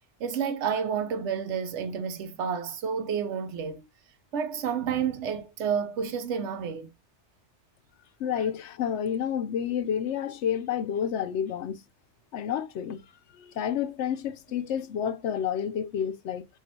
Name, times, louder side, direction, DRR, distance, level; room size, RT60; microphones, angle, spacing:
voice 1, 0.2-3.9 4.3-6.9, right 7 dB, 90° right, 1.0 m, -30 dB
voice 2, 8.2-11.8 12.3-13.0 13.3-16.5, left 8 dB, 85° left, 0.9 m, -30 dB
7.2 x 2.4 x 2.7 m
omnidirectional pair, 1.2 m